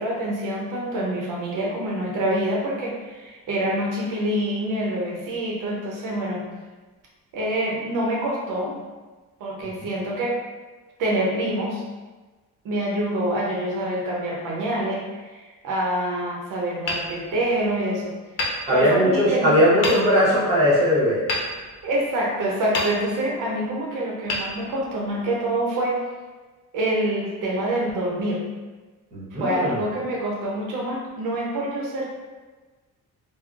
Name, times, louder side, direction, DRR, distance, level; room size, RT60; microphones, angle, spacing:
voice 1, 0.0-6.4 7.3-8.8 9.4-10.4 11.0-11.8 12.6-18.1 18.7-19.6 21.8-26.0 26.7-28.4 29.4-32.1, right 1 dB, 75° right, -3 dB, 0.6 m, -26 dB
Hammer, 16.8-17.8 18.4-19.3 19.8-20.4 21.3-22.2 22.7-23.5 24.2-25.2, left 2 dB, 80° left, 0.7 m, -30 dB
voice 2, 18.7-21.2 29.1-29.8, equal, 20° right, -8 dB, 0.9 m, -19 dB
3.6 x 2.0 x 2.3 m, 1.3 s
cardioid pair, 165°, 32 cm